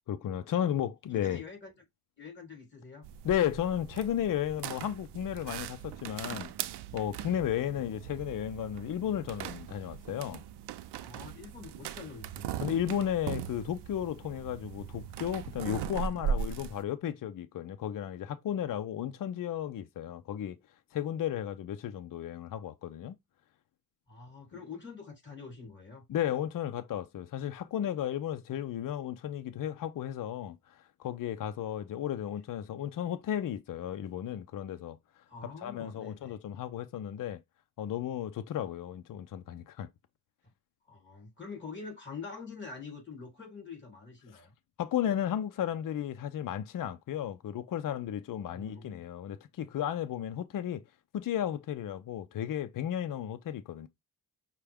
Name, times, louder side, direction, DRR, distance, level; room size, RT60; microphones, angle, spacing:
voice 1, 0.1-1.4 3.2-6.5 6.9-10.4 12.6-20.6 20.9-23.2 26.1-30.6 31.0-35.0 35.6-37.4 37.8-39.9 44.8-50.8 51.1-53.9, left 10 dB, 55° left, 0.6 m, -34 dB
voice 2, 1.1-1.7 2.2-3.1 7.7-7.8 11.0-12.6 24.1-26.1 35.3-36.4 40.9-44.5 48.4-49.0, left 5 dB, 25° left, 3.0 m, -46 dB
sound 1, 3.0-16.8, right 8 dB, 75° right, 0.6 m, -39 dB
5.8 x 2.3 x 3.4 m
cardioid pair, 95°, 40 cm